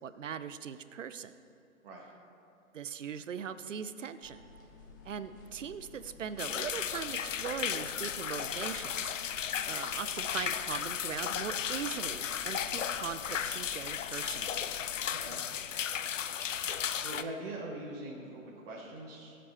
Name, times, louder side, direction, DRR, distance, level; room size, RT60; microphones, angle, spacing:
voice 1, 0.0-1.3 2.7-4.4 5.0-14.6, right 7 dB, 60° right, 13 dB, 0.7 m, -40 dB
sound 1, 4.2-15.1, left 3 dB, 15° left, 0.5 m, -54 dB
sound 2, 6.4-17.2, left 8 dB, 60° left, 0.6 m, -35 dB
voice 2, 15.1-15.4 16.5-16.7 17.0-19.4, right 2 dB, 40° right, -3 dB, 1.7 m, -43 dB
17.5 x 7.8 x 4.3 m, 2.6 s
figure-of-eight pair, 135°, 43 cm